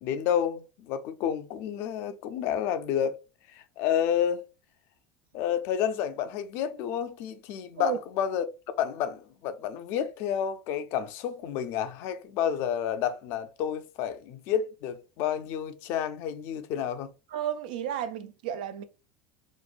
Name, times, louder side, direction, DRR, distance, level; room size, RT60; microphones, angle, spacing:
voice 1, 0.0-3.2 3.5-4.4 5.3-8.5 8.8-17.1, left 9 dB, 60° left, 0.4 m, -30 dB
voice 2, 17.3-18.8, right 10 dB, 85° right, 0.4 m, -32 dB
2.9 x 2.1 x 2.5 m
supercardioid pair, 115°, 5 cm